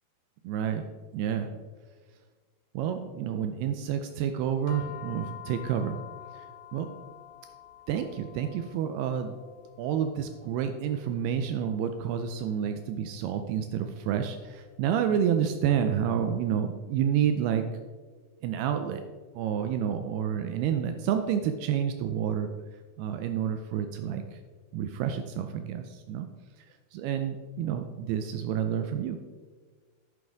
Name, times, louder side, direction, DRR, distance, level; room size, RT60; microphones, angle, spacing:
voice 1, 0.4-0.9 1.1-1.6 2.7-6.0 6.3-6.5 6.7-6.9 7.9-9.4 9.8-17.7 18.4-19.0 19.3-22.5 23.0-24.4 24.7-26.3 26.6-26.7 26.9-29.2, right 8 dB, 85° right, 7 dB, 2.3 m, -29 dB
sound 1, 4.7-15.2, left 12 dB, 75° left, 2.5 m, -49 dB
10.5 x 9.7 x 3.5 m, 1.5 s
omnidirectional pair, 5.1 m